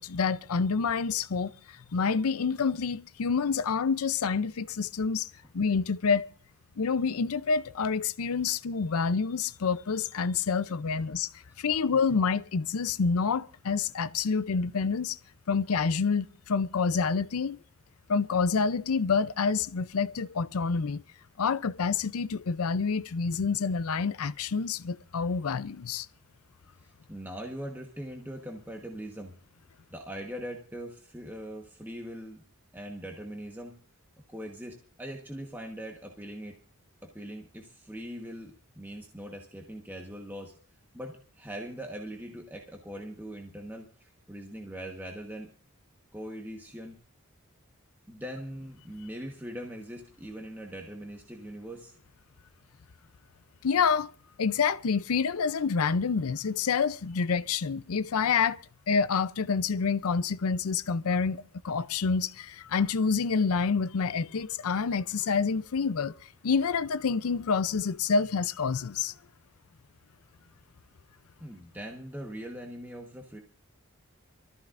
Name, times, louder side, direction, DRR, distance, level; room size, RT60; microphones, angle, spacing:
voice 1, 0.0-1.5 1.9-6.3 6.8-11.3 11.6-15.2 15.5-17.6 18.1-21.0 21.4-26.1 53.6-54.1 54.4-58.6 58.9-66.1 66.4-69.1, left 5 dB, 85° left, 0.6 m, -28 dB
voice 2, 26.8-29.4 29.9-32.4 32.7-33.7 34.3-36.6 37.0-40.5 40.9-45.5 46.1-47.0 48.1-52.0 71.4-73.4, equal, 10° right, 1.2 m, -41 dB
25.0 x 14.0 x 2.5 m
head